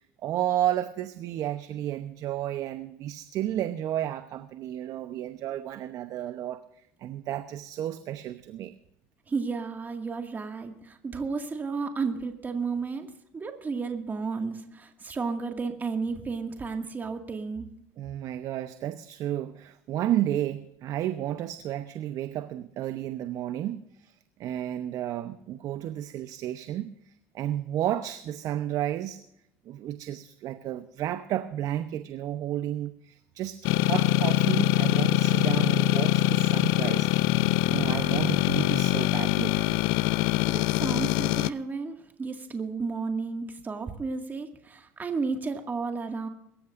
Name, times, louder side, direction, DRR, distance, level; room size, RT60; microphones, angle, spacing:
voice 1, 0.0-6.6 7.0-8.7 18.0-24.1 24.4-26.9 27.3-29.2 29.7-39.6, right 12 dB, 55° right, 10 dB, 0.9 m, -32 dB
voice 2, 9.3-13.1 13.3-17.7 40.1-46.3, right 4 dB, 25° right, 4 dB, 2.1 m, -32 dB
sound 1, 33.7-41.5, left 17 dB, 70° left, 0.5 m, -24 dB
23.0 x 14.0 x 2.6 m, 0.77 s
supercardioid pair, 85°, 7 cm